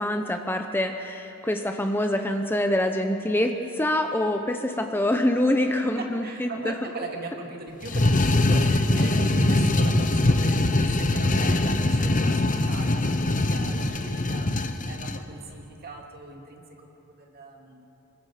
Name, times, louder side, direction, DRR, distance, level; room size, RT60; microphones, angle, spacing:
voice 1, 0.0-6.7, left 1 dB, 10° left, 5 dB, 0.8 m, -25 dB
voice 2, 6.0-17.9, right 2 dB, 45° right, 1 dB, 2.6 m, -39 dB
sound 1, 7.8-15.2, left 2 dB, 35° left, 1.0 m, -22 dB
26.5 x 22.0 x 5.1 m, 3.0 s
head